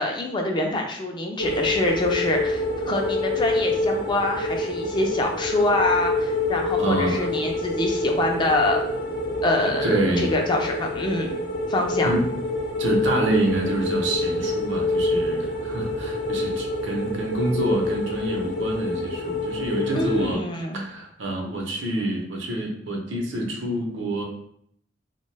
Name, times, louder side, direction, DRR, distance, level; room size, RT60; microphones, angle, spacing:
voice 1, 0.0-8.8 9.4-11.4 11.7-12.1 19.9-20.8, left 1 dB, 25° left, 1 dB, 0.3 m, -25 dB
sound 1, 1.4-20.3, left 2 dB, 85° left, 0.6 m, -27 dB
voice 2, 6.8-7.3 9.8-10.3 12.0-12.3 12.8-20.4 20.7-24.2, right 1 dB, 80° right, 0 dB, 0.7 m, -27 dB
2.7 x 2.2 x 3.2 m, 0.69 s
head